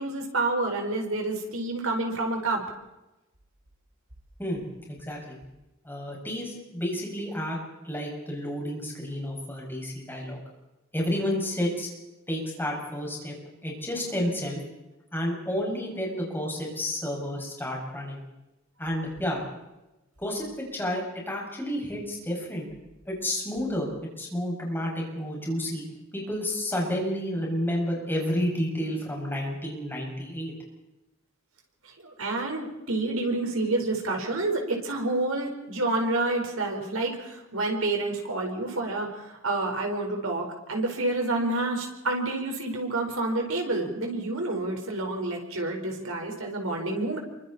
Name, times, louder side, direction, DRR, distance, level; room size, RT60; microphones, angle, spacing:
voice 1, 0.0-2.6 31.8-47.2, right 2 dB, 90° right, 2 dB, 4.9 m, -29 dB
voice 2, 4.9-5.4 5.9-7.6 7.8-10.4 10.9-11.9 12.3-13.4 13.6-14.6 15.1-18.2 18.8-19.4 20.2-20.5 20.7-22.7 23.1-23.9 24.2-25.8 26.1-30.5, equal, 10° left, -2 dB, 7.0 m, -30 dB
27.5 x 24.0 x 4.4 m, 0.98 s
head